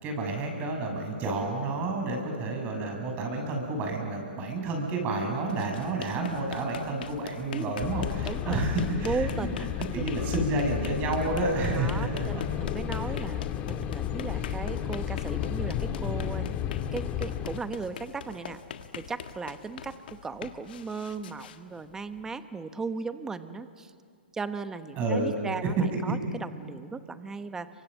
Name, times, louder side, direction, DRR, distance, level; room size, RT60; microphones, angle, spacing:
voice 1, 0.0-9.5 9.9-12.4 25.0-25.3, right 2 dB, 30° right, 2 dB, 6.7 m, -30 dB
sound 1, 5.4-22.4, left 8 dB, 65° left, 1.7 m, -43 dB
sound 2, 7.8-17.6, left 10 dB, 30° left, 1.5 m, -32 dB
voice 2, 8.2-8.7 9.0-9.6 11.7-16.5 16.9-18.6 18.9-23.9 24.3-27.7, right 4 dB, 10° right, 11 dB, 1.1 m, -36 dB
29.5 x 24.5 x 7.6 m, 2.3 s
hypercardioid pair, 135°, 6 cm